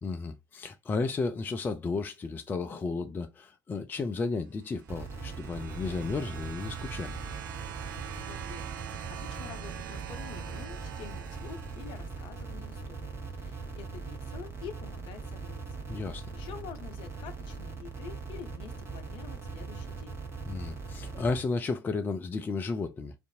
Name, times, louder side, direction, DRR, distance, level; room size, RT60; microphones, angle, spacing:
voice 1, 0.0-7.2 15.9-16.3 20.5-23.1, left 4 dB, 20° left, 0.3 m, -33 dB
sound 1, 4.6-12.4 13.4-13.5, right 11 dB, 70° right, 0.4 m, -44 dB
sound 2, 4.9-21.4, right 4 dB, 25° right, 1.0 m, -40 dB
voice 2, 8.2-15.9 16.3-20.2, left 7 dB, 50° left, 0.6 m, -47 dB
2.5 x 2.5 x 2.7 m
figure-of-eight pair, 70°, 11 cm